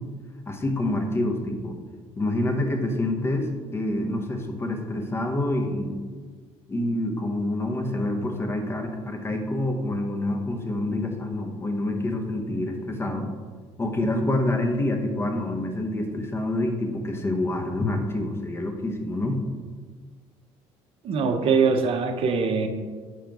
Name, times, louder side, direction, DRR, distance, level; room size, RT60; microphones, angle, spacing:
voice 1, 0.5-1.8 2.2-6.0 6.7-13.4 13.8-19.4, left 1 dB, 20° left, 4 dB, 0.7 m, -27 dB
voice 2, 21.0-22.7, right 5 dB, 50° right, 6 dB, 0.6 m, -22 dB
5.1 x 4.7 x 4.6 m, 1.5 s
cardioid pair, 130°, 12 cm